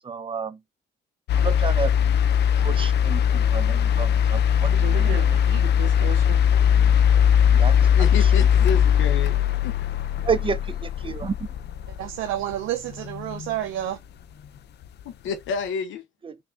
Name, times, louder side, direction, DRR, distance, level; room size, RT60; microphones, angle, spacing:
voice 1, 0.0-0.6 1.4-1.9 2.6-4.7 7.5-7.9 8.2-8.3 10.2-11.3 16.2-16.3, right 6 dB, 25° right, 0.5 m, -30 dB
sound 1, 1.3-13.5 14.8-14.9, left 8 dB, 60° left, 0.4 m, -20 dB
voice 2, 4.7-6.4 11.9-14.0, right 12 dB, 85° right, 0.4 m, -31 dB
voice 3, 7.9-9.7 15.0-16.0, left 6 dB, 75° left, 0.8 m, -30 dB
3.2 x 2.6 x 3.6 m
cardioid pair, 90°, 20 cm